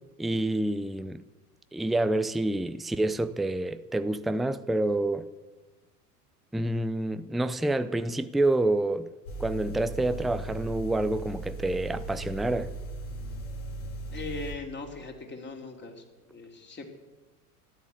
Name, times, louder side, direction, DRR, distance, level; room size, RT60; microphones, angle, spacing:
voice 1, 0.2-1.2 1.7-5.3 6.5-9.1 9.4-12.8, right 2 dB, ahead, 0.5 m, -28 dB
sound 1, 9.3-14.5, right 2 dB, 65° left, 3.5 m, -38 dB
voice 2, 14.1-16.8, left 3 dB, 25° left, 3.4 m, -40 dB
13.0 x 11.5 x 8.6 m
hypercardioid pair, 80°, 46 cm